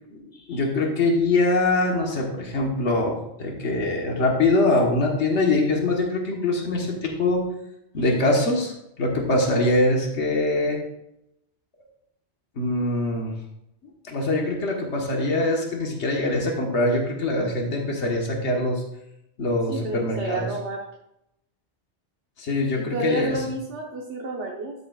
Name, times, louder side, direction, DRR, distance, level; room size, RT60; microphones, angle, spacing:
voice 1, 0.5-7.4 7.9-10.8 12.6-13.3 14.1-18.8 19.4-20.5 22.4-23.4, left 2 dB, 70° left, 0 dB, 1.7 m, -23 dB
voice 2, 19.7-20.8 22.7-24.7, right 2 dB, 75° right, -1 dB, 1.6 m, -30 dB
13.5 x 7.1 x 2.4 m, 0.81 s
omnidirectional pair, 1.2 m